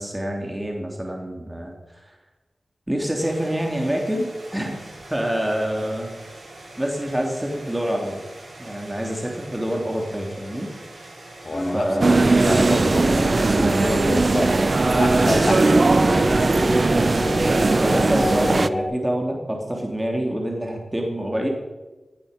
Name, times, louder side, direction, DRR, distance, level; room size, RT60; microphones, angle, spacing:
voice 1, 0.0-2.0 2.9-4.8 5.1-6.2 6.8-8.2 8.6-10.7 11.7-12.2 16.9-17.3 17.8-21.5, equal, 15° right, 1 dB, 2.7 m, -26 dB
sound 1, 3.2-18.2, right 1 dB, 70° right, 6.0 m, -43 dB
voice 2, 11.4-11.9 12.2-16.7, left 2 dB, 55° left, 9 dB, 1.5 m, -29 dB
sound 2, 11.5-18.8, left 1 dB, 5° left, 3.7 m, -28 dB
sound 3, 12.0-18.7, right 3 dB, 50° right, 0.6 m, -19 dB
16.5 x 9.0 x 6.7 m, 1.2 s
cardioid pair, 55°, 0 cm